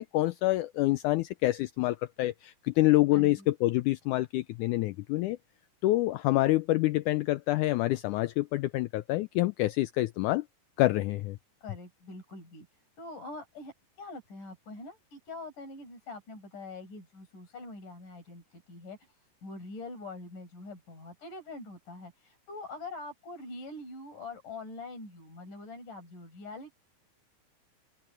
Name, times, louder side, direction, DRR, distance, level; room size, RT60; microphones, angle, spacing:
voice 1, 0.0-5.4 5.8-10.4 10.8-11.4, left 17 dB, 85° left, 1.7 m, -27 dB
voice 2, 3.1-3.5 11.6-12.7 13.0-26.7, left 2 dB, 60° left, 8.0 m, -44 dB
omnidirectional pair, 4.1 m